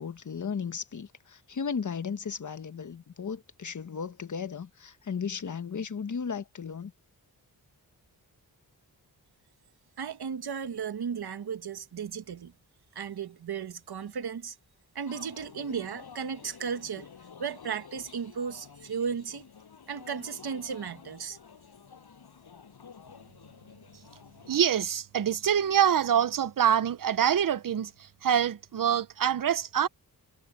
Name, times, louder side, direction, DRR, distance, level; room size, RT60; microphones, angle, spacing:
voice 1, 0.0-6.9, left 6 dB, 50° left, 1.2 m, -35 dB
voice 2, 10.0-12.5 12.9-14.6 14.9-17.1 17.4-19.4 19.9-21.4, right 6 dB, 75° right, 1.6 m, -35 dB
sound 1, 15.1-24.6, left 6 dB, 80° left, 6.2 m, -51 dB
voice 3, 24.5-29.9, right 9 dB, 60° right, 0.7 m, -25 dB
wide cardioid pair, 140°, 38 cm